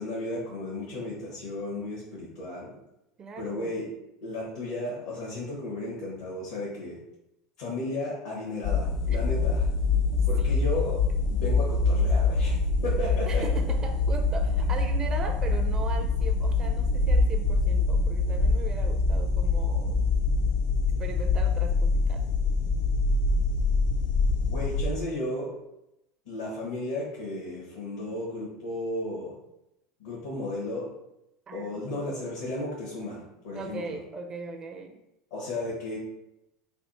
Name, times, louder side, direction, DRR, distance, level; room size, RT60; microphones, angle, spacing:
voice 1, 0.0-2.7 3.4-3.9 4.2-7.0 7.6-9.7 10.3-11.0 11.3-12.6 12.8-13.4 24.5-25.5 26.2-29.3 30.0-30.9 31.5-34.0 35.3-36.0, left 1 dB, 80° left, -6 dB, 1.3 m, -34 dB
voice 2, 3.2-3.8 9.1-9.2 10.1-10.6 13.3-20.1 21.0-22.3 31.5-32.3 33.5-35.0, right 3 dB, 30° right, 4 dB, 0.4 m, -39 dB
sound 1, 8.6-24.9, left 3 dB, 55° left, 0.4 m, -25 dB
3.4 x 2.3 x 4.2 m, 0.88 s
supercardioid pair, 100°, 2 cm